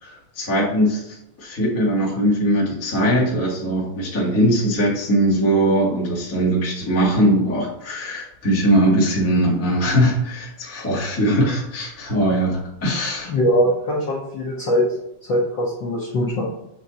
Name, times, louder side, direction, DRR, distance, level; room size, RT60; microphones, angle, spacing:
voice 1, 0.0-13.3, right 1 dB, 10° left, -5 dB, 0.8 m, -20 dB
voice 2, 13.2-14.9 15.2-16.4, equal, 60° left, -5 dB, 1.2 m, -21 dB
7.3 x 3.2 x 4.0 m, 0.81 s
omnidirectional pair, 3.6 m